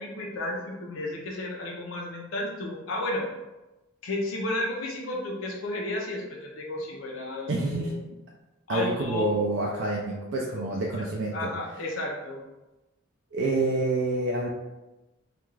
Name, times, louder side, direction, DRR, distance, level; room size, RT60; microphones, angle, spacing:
voice 1, 0.0-3.3 4.0-8.0 8.7-9.3 11.3-12.4, left 1 dB, 65° left, -2 dB, 0.5 m, -32 dB
voice 2, 7.5-7.9 8.7-11.5 13.3-14.5, right 2 dB, 55° right, -2 dB, 0.3 m, -27 dB
2.3 x 2.2 x 3.0 m, 1.0 s
head